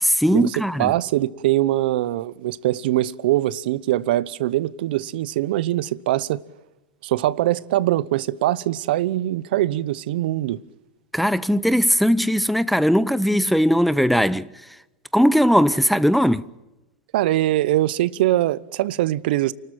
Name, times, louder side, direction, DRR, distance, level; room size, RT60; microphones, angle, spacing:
voice 1, 0.0-0.9 11.1-14.5 15.1-16.5, equal, ahead, 0.7 m, -19 dB
voice 2, 0.8-6.4 7.0-10.6 17.1-19.5, right 15 dB, 70° right, 0.9 m, -22 dB
29.0 x 13.5 x 9.0 m
hypercardioid pair, 120°, 5 cm